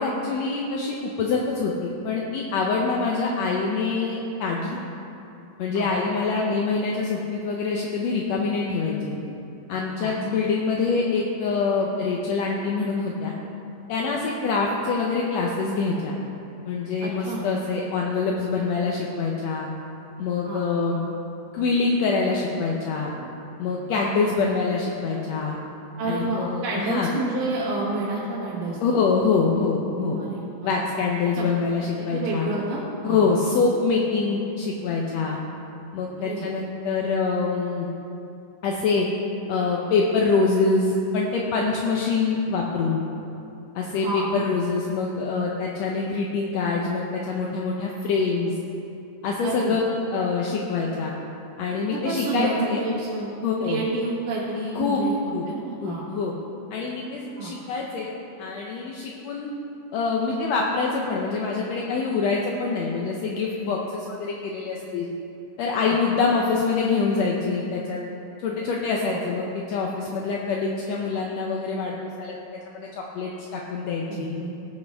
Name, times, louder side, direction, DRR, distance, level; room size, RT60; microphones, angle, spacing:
voice 1, 0.0-4.8 5.6-9.1 9.7-13.3 13.9-16.1 16.7-19.7 20.2-21.0 21.5-23.1 23.6-25.6 26.0-27.1 28.8-30.2 30.6-32.5 33.0-35.4 35.9-37.9 38.6-39.1 39.5-43.0 43.7-48.5 49.2-49.8 50.1-51.1 51.6-52.8 53.4-53.8 54.7-55.1 55.3-55.4 55.8-56.3 56.7-58.1 58.4-59.5 59.9-65.1 65.6-68.0 68.4-72.3 72.7-74.3, left 4 dB, 75° left, -2 dB, 1.6 m, -25 dB
voice 2, 17.0-17.4 20.5-20.6 24.0-24.1 26.0-29.0 30.2-30.7 31.4-31.5 32.1-33.3 36.2-36.5 43.9-44.4 49.4-49.8 51.9-53.3 53.6-55.2 55.5-56.1 57.4-57.5 65.8-66.0 69.0-69.2 74.1-74.5, right 2 dB, 75° right, -7 dB, 3.1 m, -29 dB
18.0 x 7.9 x 3.5 m, 2.7 s
omnidirectional pair, 3.9 m